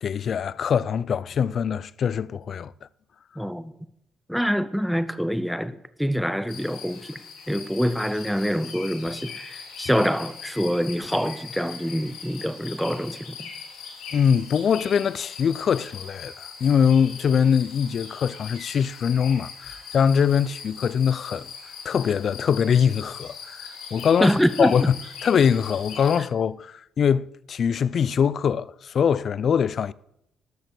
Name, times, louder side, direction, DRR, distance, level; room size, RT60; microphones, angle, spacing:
voice 1, 0.0-2.7 14.1-21.5 21.8-29.9, left 7 dB, 55° left, 0.4 m, -23 dB
voice 2, 3.4-3.7 4.3-7.2 7.5-13.5 24.2-24.7, equal, ahead, 0.6 m, -25 dB
sound 1, 6.5-26.2, left 6 dB, 85° left, 2.8 m, -41 dB
13.0 x 6.7 x 6.9 m
cardioid pair, 100°, 0 cm